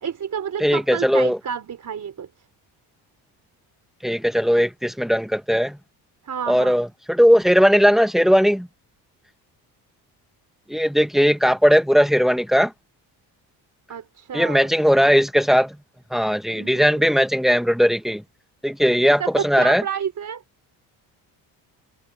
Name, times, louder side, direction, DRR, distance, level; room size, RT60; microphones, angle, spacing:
voice 1, 0.0-2.3 6.3-6.7 13.9-14.7 16.5-17.0 19.0-20.4, right 8 dB, 45° right, 4.3 m, -30 dB
voice 2, 0.6-1.4 4.0-5.8 6.5-8.7 10.7-12.7 14.3-15.8 16.1-18.2 18.6-19.8, equal, ahead, 1.8 m, -18 dB
supercardioid pair, 80°, 41 cm